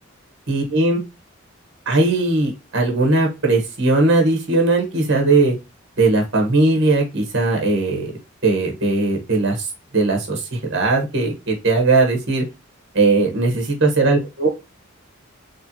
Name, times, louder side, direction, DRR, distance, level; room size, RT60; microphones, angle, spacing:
voice 1, 0.5-1.0 1.9-5.5 6.0-8.1 8.4-9.7 9.9-12.4 12.9-14.5, right 3 dB, 60° right, 2 dB, 1.2 m, -18 dB
4.3 x 3.2 x 2.8 m, 0.26 s
head